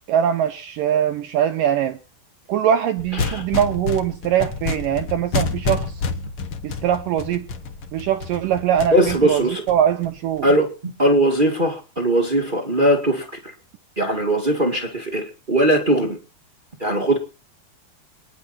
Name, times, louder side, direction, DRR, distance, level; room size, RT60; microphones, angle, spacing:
voice 1, 0.1-2.0 2.5-5.9 6.6-7.5 7.9-9.4 9.7-10.5, right 9 dB, 75° right, 2.1 m, -22 dB
sound 1, 3.0-10.4, left 4 dB, 60° left, 1.5 m, -29 dB
voice 2, 3.1-3.4 8.9-9.6 10.4-13.5 14.0-16.2 16.8-17.2, right 1 dB, 35° right, 0.8 m, -20 dB
26.0 x 10.0 x 4.3 m
omnidirectional pair, 4.8 m